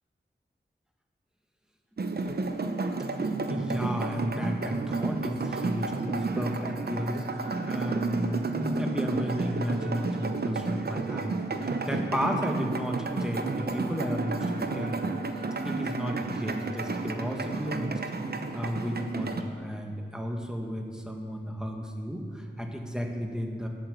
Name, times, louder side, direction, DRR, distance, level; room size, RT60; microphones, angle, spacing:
sound 1, 2.0-19.4, right 3 dB, 60° right, 0.8 m, -31 dB
voice 1, 3.5-15.0 15.6-17.9 18.5-23.7, equal, 5° right, 1 dB, 1.8 m, -33 dB
10.5 x 8.7 x 6.9 m, 2.1 s
wide cardioid pair, 55°, 19 cm